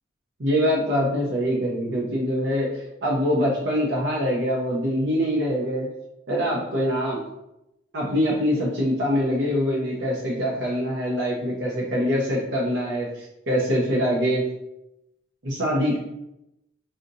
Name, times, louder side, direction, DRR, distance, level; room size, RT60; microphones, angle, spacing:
voice 1, 0.4-2.7 3.0-5.9 6.3-7.2 7.9-14.4 15.4-16.0, equal, 70° right, -4 dB, 0.7 m, -24 dB
5.0 x 2.7 x 2.6 m, 0.89 s
head